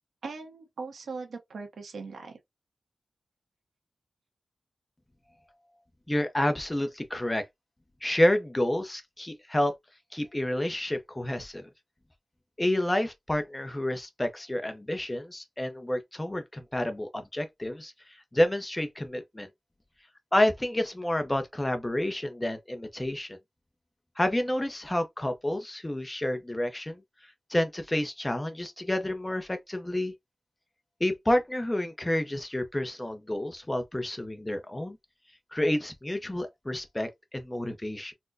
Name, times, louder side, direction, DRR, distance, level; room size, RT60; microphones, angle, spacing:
voice 1, 0.2-2.4, right 4 dB, 90° right, 1.0 m, -40 dB
voice 2, 6.1-7.4 8.0-9.7 10.1-11.6 12.6-17.9 18.3-19.5 20.3-23.3 24.2-27.0 27.5-30.1 31.0-35.0 35.5-38.1, left 1 dB, 15° left, 0.7 m, -29 dB
4.2 x 2.2 x 2.5 m
wide cardioid pair, 110°, 0 cm